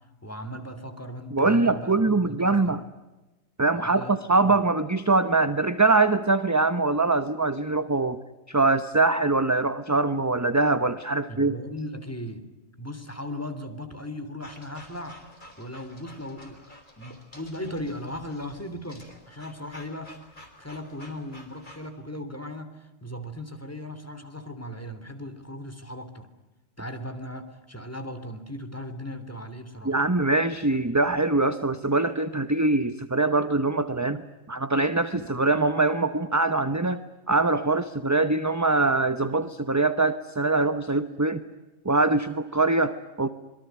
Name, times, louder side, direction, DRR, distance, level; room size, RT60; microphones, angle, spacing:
voice 1, 0.2-2.8 3.7-4.6 11.3-12.5 12.8-15.2 15.6-26.3 26.8-30.0, left 1 dB, 10° left, 8 dB, 3.1 m, -38 dB
voice 2, 1.3-2.8 3.6-8.2 8.5-11.6 29.8-34.2 34.5-41.4 41.8-43.3, right 3 dB, 15° right, 11 dB, 0.8 m, -23 dB
sound 1, 14.4-21.9, left 1 dB, 35° left, 4.8 m, -50 dB
26.5 x 23.0 x 9.4 m, 1.1 s
omnidirectional pair, 1.3 m